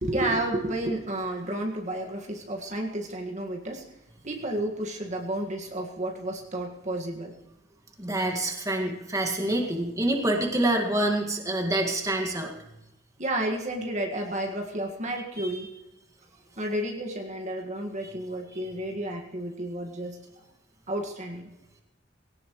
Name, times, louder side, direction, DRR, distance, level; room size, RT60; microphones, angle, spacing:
voice 1, 0.0-3.8 4.2-7.3 13.2-15.7 16.6-20.2 20.9-21.5, right 1 dB, 40° right, 1 dB, 1.8 m, -31 dB
voice 2, 8.0-12.5 15.4-15.5, right 1 dB, 20° right, 2 dB, 1.9 m, -26 dB
19.5 x 17.5 x 3.2 m, 0.93 s
head